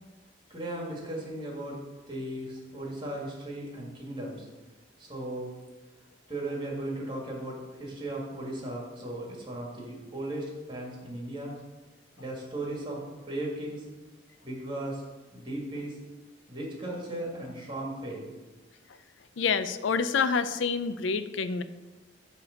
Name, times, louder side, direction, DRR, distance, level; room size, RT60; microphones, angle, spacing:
voice 1, 0.5-1.8 2.1-4.5 5.0-5.5 6.3-11.5 12.2-13.8 14.4-15.0 15.3-16.0 16.5-18.2, right 1 dB, 25° right, -2 dB, 1.8 m, -36 dB
voice 2, 19.4-21.6, left 5 dB, 75° left, 12 dB, 0.4 m, -27 dB
8.6 x 3.3 x 6.3 m, 1.2 s
head